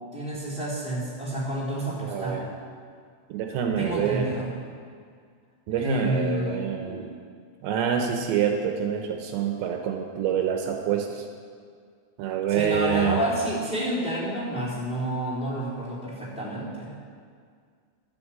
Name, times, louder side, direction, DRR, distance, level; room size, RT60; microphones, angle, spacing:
voice 1, 0.1-2.4 3.8-4.5 5.8-7.1 12.5-16.9, right 1 dB, 15° left, -7 dB, 2.6 m, -30 dB
voice 2, 2.0-2.5 3.3-4.3 5.7-7.0 7.6-11.2 12.2-13.2, right 8 dB, 80° right, 3 dB, 3.1 m, -26 dB
12.0 x 8.5 x 7.7 m, 2.1 s
omnidirectional pair, 5.4 m